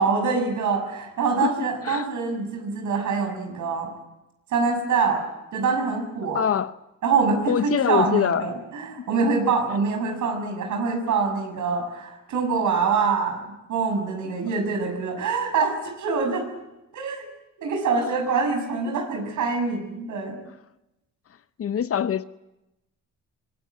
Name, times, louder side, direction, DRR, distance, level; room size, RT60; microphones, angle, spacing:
voice 1, 0.0-3.9 4.5-5.2 5.5-6.4 7.0-16.5 16.9-17.2 17.6-20.4, right 5 dB, 75° right, 5 dB, 6.9 m, -25 dB
voice 2, 6.3-6.7 7.5-8.5 18.9-19.0 21.6-22.2, left 8 dB, 50° left, 13 dB, 0.8 m, -23 dB
24.5 x 19.0 x 9.8 m, 0.96 s
cardioid pair, 90°, 30 cm